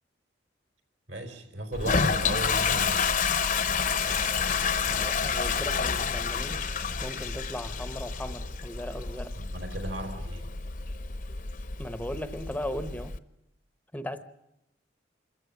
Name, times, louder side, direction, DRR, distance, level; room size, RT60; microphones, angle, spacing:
voice 1, 1.1-3.2 9.4-10.5, right 1 dB, 75° right, 4.3 m, -35 dB
Toilet flush, 1.7-13.2, left 5 dB, 45° left, 0.9 m, -29 dB
voice 2, 4.9-6.7 7.0-9.4 11.8-13.2 13.9-14.2, left 1 dB, 10° left, 0.8 m, -37 dB
26.0 x 14.5 x 9.7 m
head